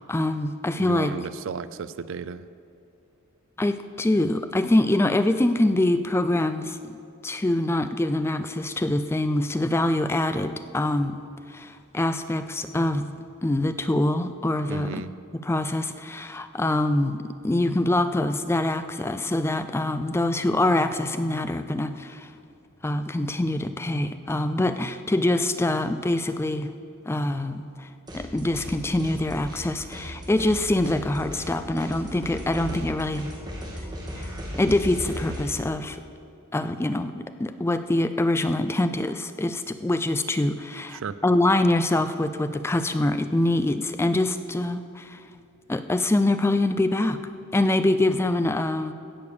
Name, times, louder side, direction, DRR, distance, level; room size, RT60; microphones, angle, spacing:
voice 1, 0.1-1.1 3.6-6.8 7.2-11.2 11.5-15.0 15.3-22.3 22.8-26.7 27.1-33.3 33.8-33.9 34.1-36.0 36.5-45.2 45.7-47.2 47.5-48.9, left 1 dB, 10° left, 10 dB, 0.3 m, -24 dB
voice 2, 0.8-2.5 14.7-15.1 40.9-41.2, right 6 dB, 60° right, 15 dB, 0.4 m, -34 dB
sound 1, 28.1-28.7 29.0-35.5, equal, 20° right, 2.5 m, -36 dB
16.5 x 6.7 x 7.0 m, 2.6 s
head